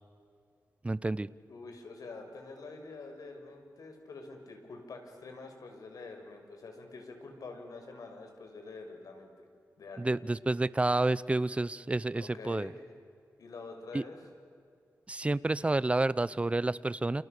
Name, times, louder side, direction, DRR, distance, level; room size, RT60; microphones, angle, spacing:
voice 1, 0.8-1.3 10.0-12.7 13.9-14.0 15.1-17.2, right 2 dB, 20° right, 18 dB, 0.7 m, -29 dB
voice 2, 1.5-9.5 9.8-10.2 12.2-12.8 13.4-14.2, left 3 dB, 70° left, 4 dB, 5.7 m, -46 dB
30.0 x 29.0 x 6.7 m, 2.3 s
wide cardioid pair, 90°, 6 cm